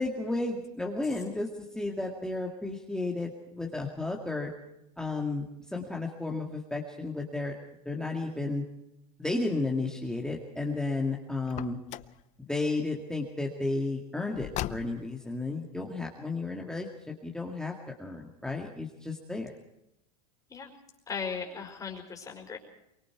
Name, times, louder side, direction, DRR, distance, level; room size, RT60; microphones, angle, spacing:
voice 1, 0.0-1.5 1.7-4.5 5.0-7.5 7.9-8.6 9.2-11.8 12.5-19.5, left 2 dB, 5° left, 0 dB, 2.1 m, -33 dB
Car, 11.4-12.2 14.3-15.2, left 14 dB, 40° left, 0.7 m, -38 dB
voice 2, 21.1-22.6, left 5 dB, 20° left, 1 dB, 4.8 m, -37 dB
23.5 x 23.5 x 4.7 m, 0.84 s
supercardioid pair, 125°, 20 cm